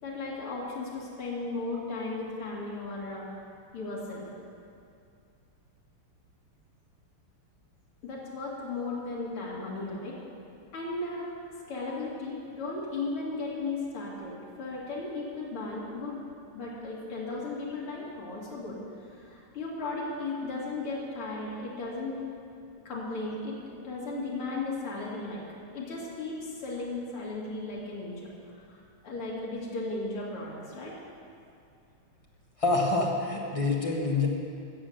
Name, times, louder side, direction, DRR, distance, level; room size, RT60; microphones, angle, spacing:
voice 1, 0.0-3.3 3.7-4.3 8.0-10.2 10.7-11.3 11.7-16.2 16.5-18.8 19.1-22.2 22.8-25.4 25.7-28.3 28.6-30.9, left 3 dB, 75° left, -5 dB, 3.2 m, -36 dB
voice 2, 32.6-34.3, left 3 dB, 15° left, -2 dB, 1.5 m, -26 dB
14.0 x 7.4 x 7.8 m, 2.5 s
omnidirectional pair, 2.4 m